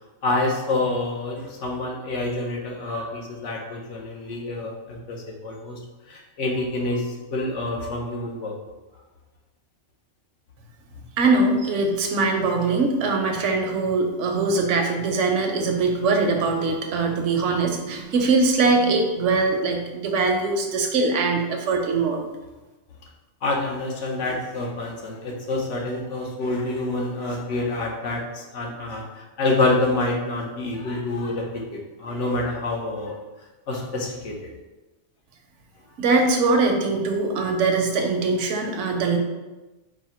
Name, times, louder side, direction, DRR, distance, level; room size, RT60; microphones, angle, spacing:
voice 1, 0.2-5.8 6.1-8.5 23.4-33.1 33.7-34.4, left 2 dB, 80° left, -1 dB, 1.2 m, -27 dB
voice 2, 11.2-22.3 36.0-39.2, right 3 dB, 75° right, 3 dB, 1.0 m, -22 dB
4.8 x 2.2 x 4.2 m, 1.1 s
omnidirectional pair, 1.3 m